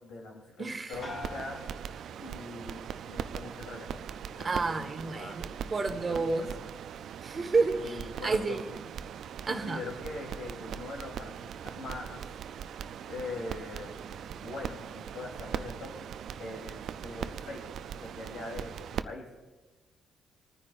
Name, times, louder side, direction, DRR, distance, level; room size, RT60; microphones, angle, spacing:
voice 1, 0.0-1.9 2.2-2.8 3.1-5.4 5.8-6.7 7.2-7.5 7.8-8.8 9.4-12.3 13.1-16.0 16.4-17.6 18.0-19.3, left 2 dB, 80° left, -1 dB, 3.1 m, -42 dB
voice 2, 0.6-1.0 4.4-6.5 7.2-8.6 9.5-9.8, right 4 dB, 35° right, 6 dB, 1.2 m, -30 dB
sound 1, 0.9-19.0, right 8 dB, 70° right, 0.3 m, -40 dB
sound 2, 1.0-2.7 3.1-3.7, left 3 dB, 45° left, 2.3 m, -46 dB
26.5 x 9.7 x 2.4 m, 1.2 s
cardioid pair, 90°, 0 cm